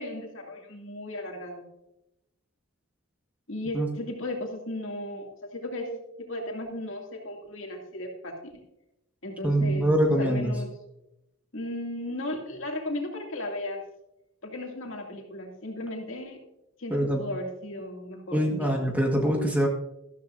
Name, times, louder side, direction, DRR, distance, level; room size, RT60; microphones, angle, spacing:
voice 1, 0.0-1.7 3.5-5.9 6.2-8.5 9.2-9.9 10.2-10.7 11.5-13.8 14.4-16.4 16.8-18.8, left 1 dB, 65° left, 1 dB, 2.3 m, -35 dB
voice 2, 9.4-10.5 16.9-17.2 18.3-19.7, right 1 dB, 5° right, 1 dB, 1.4 m, -24 dB
13.5 x 13.0 x 2.6 m, 0.88 s
head